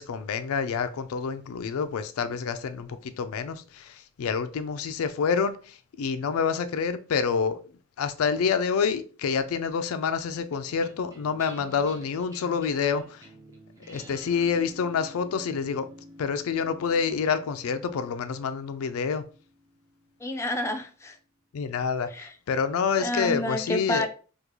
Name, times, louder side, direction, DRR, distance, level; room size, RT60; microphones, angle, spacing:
voice 1, 0.0-7.6 8.0-13.3 13.9-15.9 16.2-19.2 21.5-24.1, left 6 dB, 85° left, 0.4 m, -28 dB
sound 1, 10.4-21.0, equal, 15° right, 0.7 m, -50 dB
voice 2, 20.2-21.2 22.1-22.3 23.0-24.1, left 1 dB, 15° left, 0.3 m, -29 dB
3.6 x 2.3 x 3.0 m
head